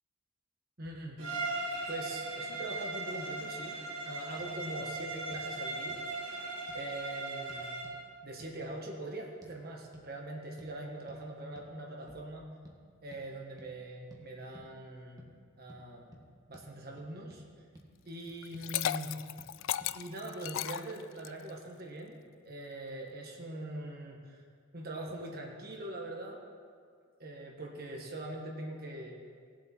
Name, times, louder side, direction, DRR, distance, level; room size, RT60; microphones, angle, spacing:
voice 1, 0.8-1.2 1.5-6.4 6.7-7.8 8.2-12.5 13.0-15.2 15.6-17.4 18.0-19.1 19.9-22.2 22.4-24.4 24.7-26.4 27.2-29.1, right 1 dB, 50° right, -1 dB, 1.5 m, -42 dB
Bowed string instrument, 1.2-8.0, right 2 dB, 70° right, 2.6 m, -38 dB
sound 1, 4.4-4.5 4.8-4.9 5.3-5.4 5.9-6.1 6.7-6.9 7.5-8.0 8.4-8.6 9.4-9.6 9.9-10.1 10.6-10.8 11.1-11.2 11.6-11.7 12.1-12.3 12.7-12.8 13.1-13.2 13.6-13.7 14.1-14.2 14.5-14.7 15.2-15.3 15.7-15.8 16.1-16.3 16.5-16.7 17.0-17.4 17.8-17.9 18.3-18.7 19.4-19.5 19.8-19.9, equal, 20° right, 1.4 m, -55 dB
Liquid, 18.4-21.5, left 12 dB, 70° left, 0.3 m, -35 dB
18.5 x 7.5 x 4.5 m, 2.1 s
head